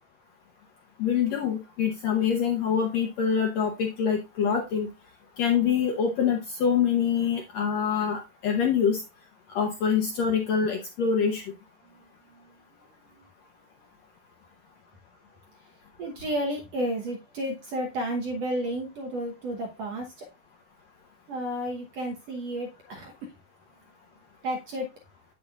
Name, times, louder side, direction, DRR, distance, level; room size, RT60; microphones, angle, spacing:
voice 1, 1.0-4.9 5.4-9.0 9.5-11.4, left 7 dB, 70° left, 3 dB, 1.6 m, -25 dB
voice 2, 16.0-20.3 21.3-23.3 24.4-24.9, right 1 dB, 65° right, 1 dB, 1.7 m, -32 dB
8.5 x 7.5 x 2.3 m, 0.26 s
omnidirectional pair, 4.1 m